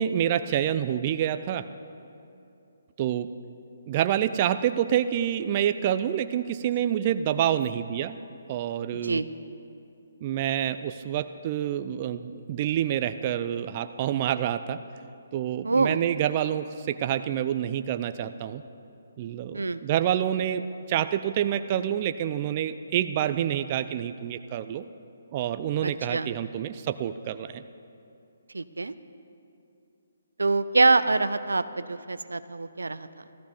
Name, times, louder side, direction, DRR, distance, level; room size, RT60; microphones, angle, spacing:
voice 1, 0.0-1.7 3.0-3.3 3.9-8.2 8.5-9.2 10.2-14.8 15.3-18.6 19.2-24.8 25.3-27.6, right 10 dB, 35° right, 10 dB, 0.5 m, -27 dB
voice 2, 8.9-9.3 15.6-16.0 19.5-19.8 25.8-26.3 28.5-28.9 30.4-33.1, right 3 dB, 90° right, 13 dB, 0.6 m, -25 dB
15.0 x 14.0 x 5.1 m, 2.7 s
hypercardioid pair, 150°, 0 cm